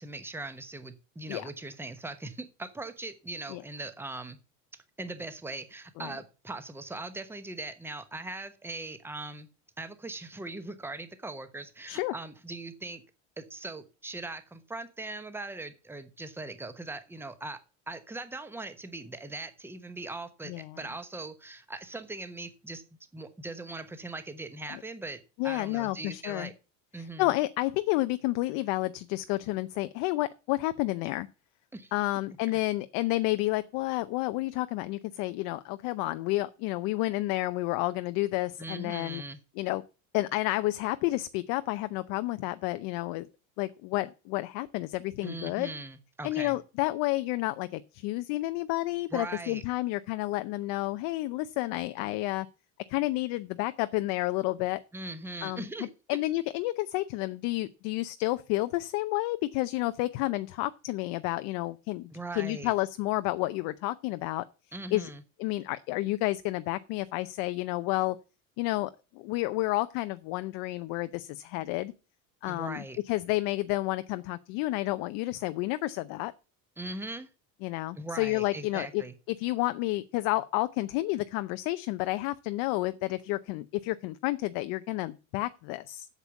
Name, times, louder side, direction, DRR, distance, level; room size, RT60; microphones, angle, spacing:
voice 1, 0.0-4.4 5.0-9.5 9.8-13.0 13.4-17.6 17.9-22.8 23.1-26.5 26.9-27.3 31.7-31.9 38.6-39.4 45.2-46.6 49.1-49.6 54.9-55.9 62.1-62.7 64.7-65.2 72.5-73.0 76.8-77.3 78.0-79.1, right 2 dB, 5° right, 1.1 m, -40 dB
voice 2, 20.5-20.8 24.7-24.8 25.4-26.5 27.2-31.3 31.9-39.2 39.6-39.8 40.1-43.3 43.6-45.7 46.2-52.5 52.9-54.8 55.4-55.6 56.1-64.4 64.9-65.1 65.4-68.2 68.6-71.9 72.4-76.3 77.6-79.0 79.3-86.1, left 18 dB, 55° left, 0.7 m, -30 dB
8.3 x 6.9 x 6.9 m
supercardioid pair, 140°, 39 cm